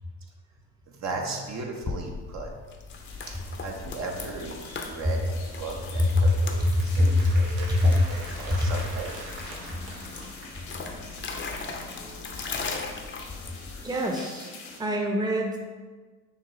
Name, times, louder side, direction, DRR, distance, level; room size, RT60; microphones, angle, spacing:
voice 1, 0.9-2.5 3.6-4.6 4.9-6.6 6.8-9.1, right 3 dB, 45° right, 0 dB, 0.8 m, -36 dB
sound 1, 1.8-13.9, left 4 dB, 30° left, 0.6 m, -39 dB
sound 2, 2.9-14.8, left 3 dB, 70° left, 1.0 m, -45 dB
Applause, 5.2-11.0, right 2 dB, 75° right, 1.0 m, -44 dB
voice 2, 6.0-6.3 7.0-7.4 7.8-7.9 8.5-8.7 13.8-14.5 14.8-15.6, left 1 dB, 10° right, 1 dB, 0.7 m, -23 dB
6.5 x 2.3 x 3.1 m, 1.4 s
supercardioid pair, 65°, 37 cm